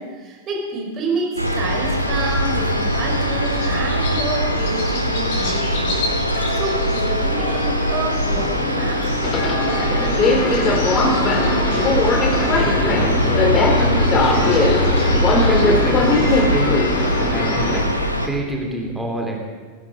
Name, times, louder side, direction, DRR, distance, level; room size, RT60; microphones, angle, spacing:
voice 1, 0.0-9.0 9.4-10.4, right 2 dB, 30° right, 0 dB, 4.5 m, -29 dB
sound 1, 1.4-18.3, equal, 90° left, 1.0 m, -22 dB
sound 2, 1.4-18.3, left 2 dB, 50° left, 4.6 m, -29 dB
Subway metro underground, 8.2-17.8, left 2 dB, 25° left, 2.0 m, -20 dB
voice 2, 11.7-12.0 12.3-13.4 13.8-15.1 15.5-16.7 17.2-17.9 18.2-19.5, right 1 dB, 5° right, 0 dB, 3.1 m, -27 dB
19.5 x 11.0 x 5.4 m, 1.5 s
figure-of-eight pair, 90°, 0 cm